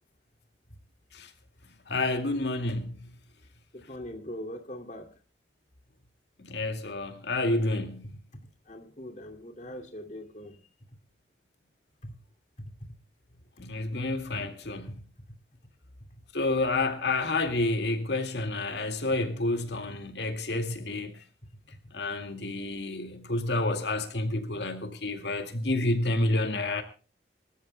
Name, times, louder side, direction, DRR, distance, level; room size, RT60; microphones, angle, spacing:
voice 1, 1.9-3.0 6.4-8.1 13.6-15.0 16.3-21.2 21.9-26.8, left 2 dB, 70° left, 2.2 m, -29 dB
voice 2, 3.7-5.1 8.3-10.6 12.0-12.1 16.1-16.2 25.6-25.7, equal, 45° left, 2.4 m, -42 dB
26.5 x 14.0 x 2.2 m
head